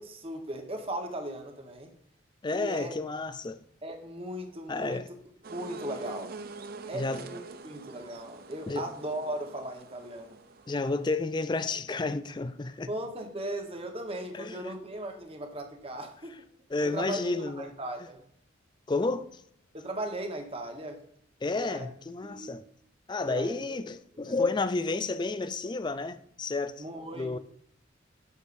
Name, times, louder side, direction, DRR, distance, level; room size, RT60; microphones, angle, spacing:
voice 1, 0.0-1.9 2.5-2.9 3.8-5.2 5.5-6.3 6.9-7.4 7.6-10.4 12.9-16.4 16.8-18.2 19.7-21.0 21.5-21.9 22.2-22.5 23.2-23.8 24.3-24.4 26.8-27.4, right 1 dB, 30° right, 1.1 m, -37 dB
voice 2, 2.4-3.6 4.7-5.1 6.9-7.2 8.7-8.9 10.7-12.9 14.3-14.8 16.7-17.7 18.9-19.4 21.4-22.6 23.1-26.8 27.1-27.4, left 3 dB, 20° left, 0.4 m, -31 dB
sound 1, 5.4-11.2, right 4 dB, 50° right, 0.5 m, -45 dB
8.3 x 6.4 x 2.6 m
head